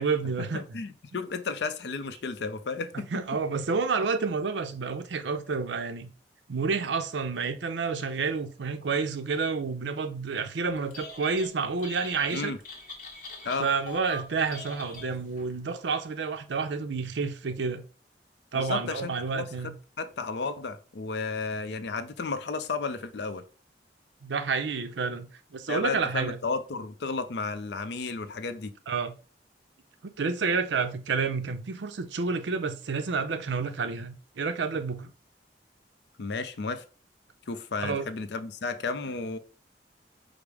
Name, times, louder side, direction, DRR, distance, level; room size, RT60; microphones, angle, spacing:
voice 1, 0.0-0.8 1.1-1.2 2.9-6.1 6.5-12.5 13.6-17.8 18.5-19.7 24.2-26.4 28.9-29.1 30.0-35.1 37.8-38.1, right 4 dB, 85° right, 0.6 m, -29 dB
voice 2, 0.5-3.0 12.3-12.6 13.4-13.7 18.5-19.5 20.0-23.4 25.7-28.7 36.2-36.8 37.5-39.4, left 4 dB, 70° left, 0.5 m, -33 dB
Telephone, 10.8-11.5 11.8-15.5, left 2 dB, 50° left, 1.4 m, -43 dB
5.0 x 2.0 x 4.8 m
head